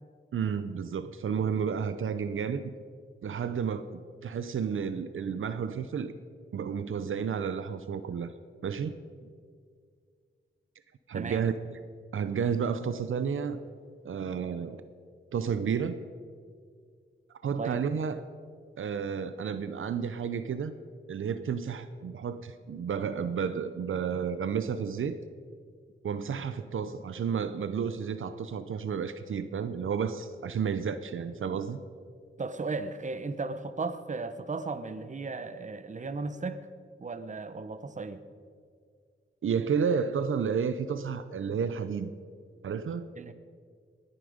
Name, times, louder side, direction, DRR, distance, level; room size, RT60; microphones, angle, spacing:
voice 1, 0.3-2.7 3.2-6.1 6.5-8.3 8.6-9.0 11.1-11.8 12.1-13.6 14.0-14.8 15.3-16.0 17.4-18.2 18.8-20.7 21.1-25.2 26.0-31.8 39.4-42.1 42.6-43.1, right 6 dB, 75° right, 12 dB, 0.7 m, -31 dB
voice 2, 11.1-11.4 17.6-17.8 32.4-36.6 37.0-38.2 43.2-43.3, right 3 dB, 35° right, 12 dB, 0.8 m, -35 dB
20.5 x 10.0 x 5.1 m, 2.1 s
wide cardioid pair, 85°, 21 cm